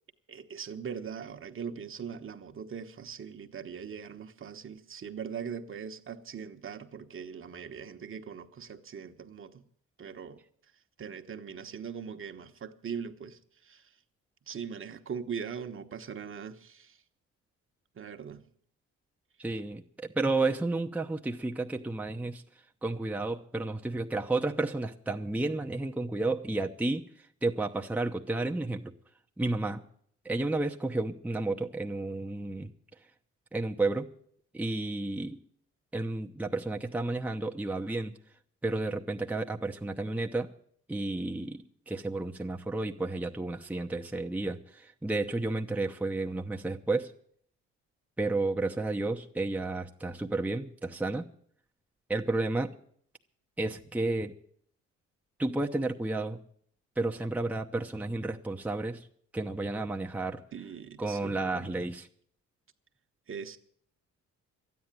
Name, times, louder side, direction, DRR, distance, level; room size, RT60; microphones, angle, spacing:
voice 1, 0.3-9.6 10.0-10.4 11.0-13.9 14.5-17.0 17.9-18.4 60.5-61.9 63.3-63.6, right 7 dB, 45° right, 1.1 m, -41 dB
voice 2, 19.4-22.4 22.8-27.0 27.4-28.9 29.4-29.8 30.2-32.7 33.5-34.1 34.5-35.4 35.9-38.1 38.6-40.5 40.9-47.1 48.2-51.3 52.1-52.7 53.6-54.3 55.4-56.4 57.0-59.1 59.3-60.4 61.0-62.1, right 2 dB, 5° right, 0.8 m, -31 dB
12.5 x 9.6 x 9.0 m
cardioid pair, 90°, 30 cm